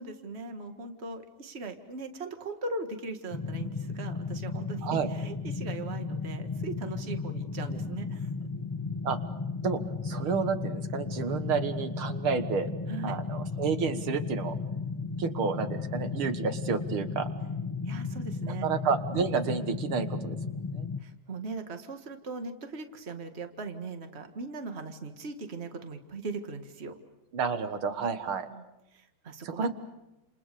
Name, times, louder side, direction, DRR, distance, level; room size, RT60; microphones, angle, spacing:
voice 1, 0.0-8.3 12.9-13.2 17.8-18.7 21.0-26.9 28.5-28.6 28.9-29.7, right 3 dB, 30° right, 7 dB, 1.9 m, -39 dB
sound 1, 3.3-21.0, left 4 dB, 20° left, 0.6 m, -35 dB
voice 2, 9.6-12.7 13.0-14.5 15.2-17.3 18.6-20.4 20.7-20.9 27.3-28.5 29.4-29.7, right 5 dB, 80° right, 9 dB, 2.3 m, -30 dB
29.5 x 28.0 x 6.9 m, 0.97 s
omnidirectional pair, 2.3 m